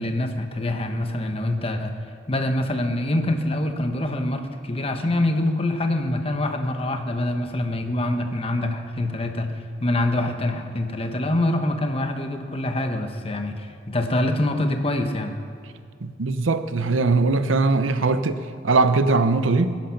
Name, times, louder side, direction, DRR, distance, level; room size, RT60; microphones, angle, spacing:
voice 1, 0.0-1.9 2.3-15.4, left 1 dB, 30° left, 5 dB, 1.1 m, -25 dB
voice 2, 16.0-19.8, right 3 dB, 80° right, 11 dB, 0.8 m, -21 dB
20.5 x 10.5 x 5.8 m, 2.3 s
head